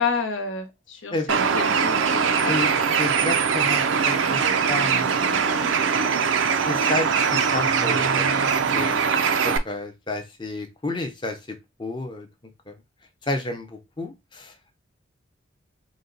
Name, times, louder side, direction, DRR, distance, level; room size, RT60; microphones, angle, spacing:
voice 1, 0.0-2.8 4.2-4.4 4.8-4.9 5.3-5.7 6.0-6.1, left 5 dB, 75° left, 5 dB, 1.0 m, -31 dB
Bird, 1.3-9.6, right 6 dB, 75° right, 0.5 m, -22 dB
voice 2, 3.0-4.4 4.7-5.1 6.7-8.3 8.7-9.0 9.4-11.4 11.8-12.3 12.7-12.8 13.2-14.5, left 2 dB, 25° left, 5 dB, 0.7 m, -30 dB
3.9 x 2.2 x 3.9 m, 0.22 s
head